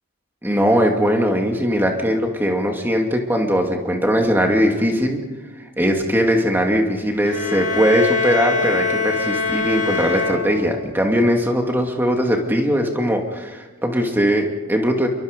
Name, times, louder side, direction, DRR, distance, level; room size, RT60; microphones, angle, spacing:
voice 1, 0.4-5.2 5.8-15.1, equal, 10° right, 2 dB, 2.4 m, -20 dB
sound 1, 7.2-11.0, left 4 dB, 35° left, 4.6 m, -23 dB
27.0 x 23.5 x 5.3 m, 1.3 s
head